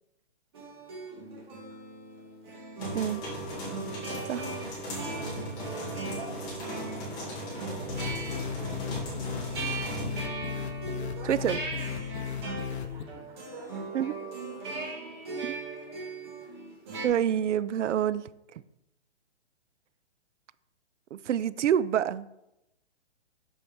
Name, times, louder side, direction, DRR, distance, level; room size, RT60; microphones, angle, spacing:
sound 1, 0.5-17.1, right 3 dB, 20° right, 1.4 m, -39 dB
voice 1, 1.1-1.6 5.1-6.7 7.1-9.3 10.9-11.7 12.4-14.9, right 4 dB, 60° right, 2.2 m, -48 dB
sound 2, 2.8-10.2, equal, 10° left, 1.2 m, -38 dB
sound 3, 7.9-13.0, left 8 dB, 65° left, 0.9 m, -36 dB
voice 2, 11.3-11.6 13.9-14.1 15.4-15.5 17.0-18.2 18.5-18.6 21.1-22.3, right 9 dB, 80° right, 0.5 m, -27 dB
11.5 x 4.6 x 3.4 m
hypercardioid pair, 175°, 36 cm